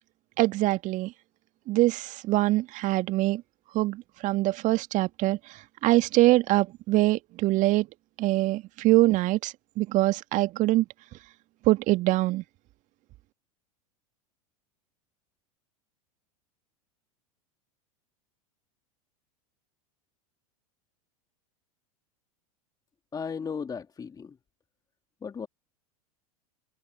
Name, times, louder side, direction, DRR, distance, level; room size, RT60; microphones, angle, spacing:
voice 1, 0.4-1.1 1.7-3.4 3.7-5.4 5.8-7.9 8.2-10.8 11.7-12.4, right 18 dB, 45° right, 2.0 m, -24 dB
voice 2, 23.1-24.4 25.2-25.5, left 6 dB, 20° left, 2.9 m, -35 dB
figure-of-eight pair, 85°, 19 cm